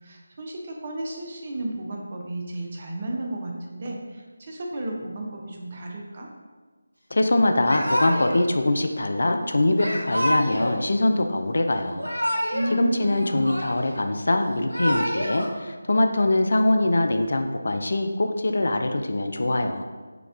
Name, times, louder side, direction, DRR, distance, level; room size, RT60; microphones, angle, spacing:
voice 1, 0.0-6.3 12.5-13.5, right 1 dB, 35° right, 0 dB, 0.6 m, -32 dB
voice 2, 7.1-12.1 12.7-19.8, left 2 dB, 55° left, 5 dB, 0.3 m, -23 dB
Yell / Crying sobbing, 7.6-8.4 9.8-10.8 11.8-12.7 13.0-14.0 14.5-15.5, equal, 85° right, 0.8 m, -27 dB
4.8 x 2.3 x 3.5 m, 1.4 s
figure-of-eight pair, 160°, 0 cm